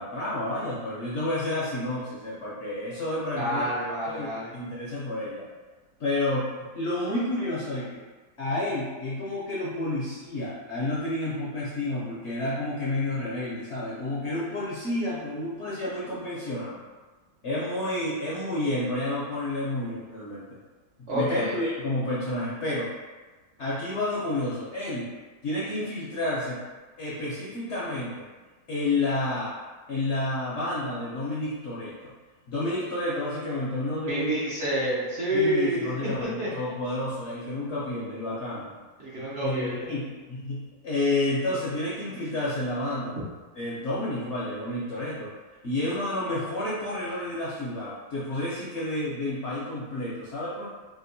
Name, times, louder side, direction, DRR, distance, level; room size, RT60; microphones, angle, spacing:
voice 1, 0.0-3.7 4.1-5.5 6.0-8.0 8.4-16.8 17.4-20.4 21.1-22.9 23.6-25.1 25.4-26.6 27.0-28.3 28.7-29.5 29.9-32.1 32.5-34.4 35.3-38.7 39.4-43.2 43.6-45.3 45.6-50.7, left 1 dB, 60° left, -8 dB, 0.8 m, -30 dB
voice 2, 3.4-4.5 21.1-21.6 34.1-36.5 39.0-39.8 43.1-43.2, right 1 dB, 55° right, -9 dB, 0.9 m, -28 dB
3.5 x 2.4 x 2.6 m, 1.3 s
omnidirectional pair, 1.8 m